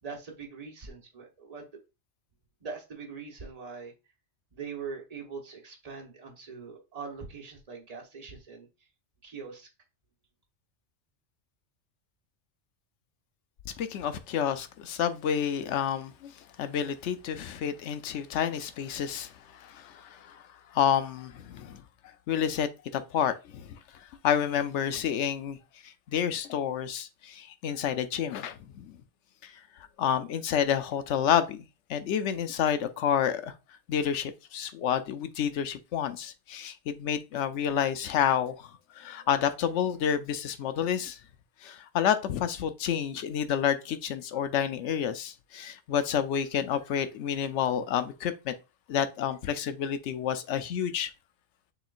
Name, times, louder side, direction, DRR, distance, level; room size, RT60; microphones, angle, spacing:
voice 1, 0.0-1.8 2.6-3.9 4.5-8.7 9.2-9.7, right 5 dB, 35° right, 1.2 m, -42 dB
voice 2, 13.8-16.3 16.6-20.4 20.7-21.8 22.3-23.8 24.2-25.6 26.1-28.9 29.4-29.5 30.0-31.6 31.9-33.5 33.9-38.7 39.0-41.2 41.6-48.5 48.9-51.1, left 9 dB, 80° left, 0.9 m, -29 dB
6.6 x 3.1 x 2.5 m
omnidirectional pair, 1.2 m